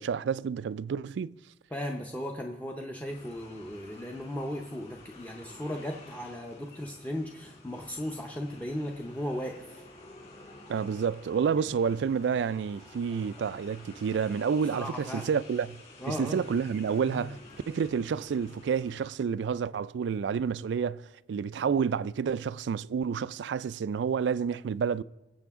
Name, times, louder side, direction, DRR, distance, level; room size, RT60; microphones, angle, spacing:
voice 1, 0.0-1.4 10.7-15.8 16.1-17.4 17.7-25.0, right 6 dB, 70° right, 0.3 m, -29 dB
voice 2, 1.7-9.8 14.6-15.3 16.0-16.5 17.0-17.3, left 1 dB, 10° left, 0.7 m, -36 dB
sound 1, 3.1-19.1, left 2 dB, 35° left, 3.7 m, -51 dB
21.5 x 7.6 x 3.6 m
head